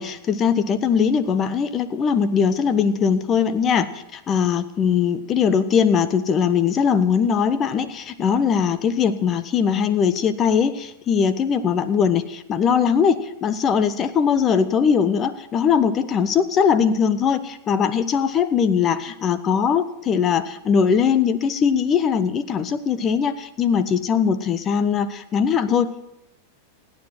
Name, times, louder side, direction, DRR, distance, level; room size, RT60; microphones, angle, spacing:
voice 1, 0.0-26.1, left 7 dB, 25° left, 13 dB, 1.2 m, -20 dB
28.0 x 10.0 x 4.5 m, 0.85 s
figure-of-eight pair, 90°, 0 cm